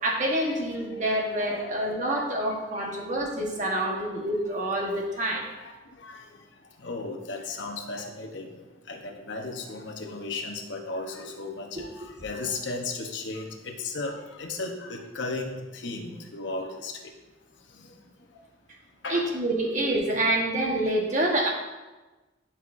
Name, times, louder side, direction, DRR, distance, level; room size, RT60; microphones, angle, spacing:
voice 1, 0.0-5.4 19.1-21.5, right 1 dB, 40° right, -1 dB, 1.3 m, -27 dB
voice 2, 1.2-3.0 3.8-4.0 5.1-17.1 17.6-18.5 18.9-19.3, left 3 dB, 65° left, 3 dB, 0.9 m, -36 dB
11.5 x 5.6 x 2.6 m, 1.2 s
head